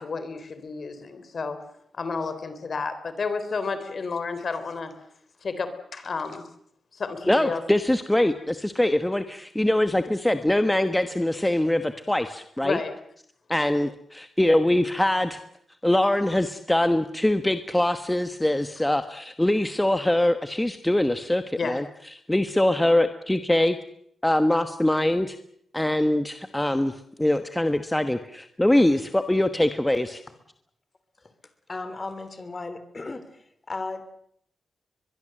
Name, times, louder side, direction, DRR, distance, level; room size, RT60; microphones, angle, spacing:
voice 1, 0.0-1.6 1.9-4.9 5.4-6.5 6.9-7.6 12.6-12.9 21.6-21.8, left 4 dB, 50° left, 11 dB, 3.6 m, -31 dB
voice 2, 7.3-12.8 13.5-15.4 15.8-21.8 22.3-23.8 24.2-25.4 25.7-26.9 27.2-30.2, left 1 dB, 10° left, 9 dB, 1.2 m, -23 dB
voice 3, 31.7-34.0, left 3 dB, 30° left, 11 dB, 3.3 m, -36 dB
22.5 x 22.5 x 7.8 m, 0.69 s
wide cardioid pair, 110°, 0 cm